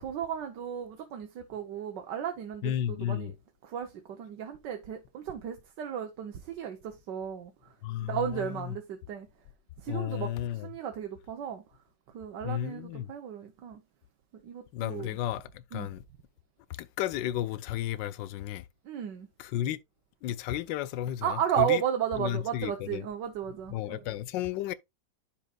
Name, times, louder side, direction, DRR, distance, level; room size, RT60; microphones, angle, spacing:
voice 1, 0.0-3.3 3.6-7.5 8.0-9.3 9.8-11.6 12.1-13.8 14.4-15.2 15.7-15.9 18.8-19.3 21.2-24.1, right 9 dB, 75° right, 1.5 m, -34 dB
voice 2, 2.6-3.3 7.8-8.7 9.9-10.7 12.4-13.1 14.7-16.0 16.8-18.6 19.4-19.8 20.2-21.8 22.1-23.0 23.7-24.7, left 12 dB, 85° left, 1.3 m, -33 dB
10.0 x 5.8 x 2.3 m
omnidirectional pair, 2.0 m